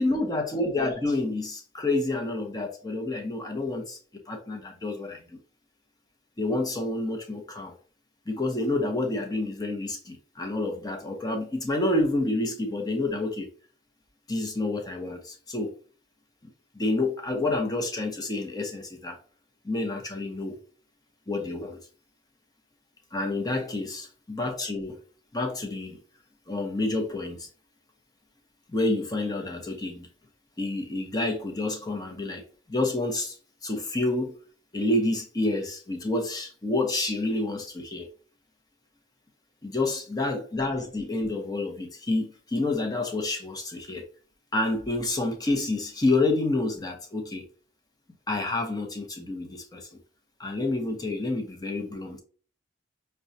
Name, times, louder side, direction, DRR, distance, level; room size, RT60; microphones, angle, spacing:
voice 1, 0.0-4.0 4.3-5.4 6.4-7.7 8.3-13.5 14.3-15.7 16.7-19.2 19.6-20.6 21.3-21.8 23.1-25.0 25.3-26.0 26.5-27.5 28.7-30.1 30.6-32.4 32.7-33.4 33.6-34.3 34.7-38.1 39.6-44.0 44.5-47.4 48.3-50.0 50.4-52.2, left 2 dB, 20° left, 0.7 m, -28 dB
6.0 x 2.2 x 2.6 m
head